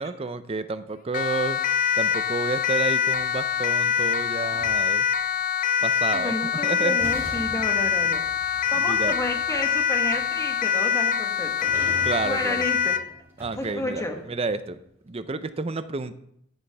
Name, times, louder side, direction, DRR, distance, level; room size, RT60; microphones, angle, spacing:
voice 1, 0.0-1.6 2.0-5.1 5.8-6.3 6.6-7.0 8.8-9.1 12.0-12.6 13.4-14.0 14.3-14.8 15.1-16.1, right 3 dB, 30° right, 12 dB, 0.5 m, -30 dB
Siren, 1.1-13.1, left 8 dB, 45° left, 0.4 m, -24 dB
sound 1, 2.8-5.2 6.4-6.5 7.0-14.5, equal, 10° right, 2.6 m, -43 dB
voice 2, 6.1-13.2 13.5-14.2, left 1 dB, 15° left, 4 dB, 1.3 m, -32 dB
10.5 x 9.6 x 3.4 m, 0.72 s
head